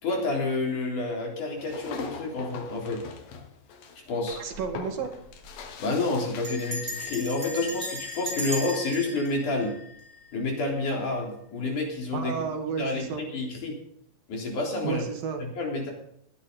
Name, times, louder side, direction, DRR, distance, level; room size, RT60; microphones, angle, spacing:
voice 1, 0.0-3.0 4.1-4.4 5.8-9.8 10.3-12.5 12.8-13.8 14.3-15.0 15.4-15.9, left 2 dB, 60° left, 0 dB, 5.1 m, -29 dB
sound 1, 1.6-7.0, left 5 dB, 80° left, 3.7 m, -41 dB
Bell, 4.3-4.7 5.0-5.1 5.3-5.7 6.4-10.5, equal, 25° right, 4.0 m, -37 dB
voice 2, 4.3-5.1 12.1-13.2 14.8-15.4, right 6 dB, 75° right, 5 dB, 3.7 m, -32 dB
19.0 x 11.5 x 4.0 m, 0.69 s
omnidirectional pair, 4.1 m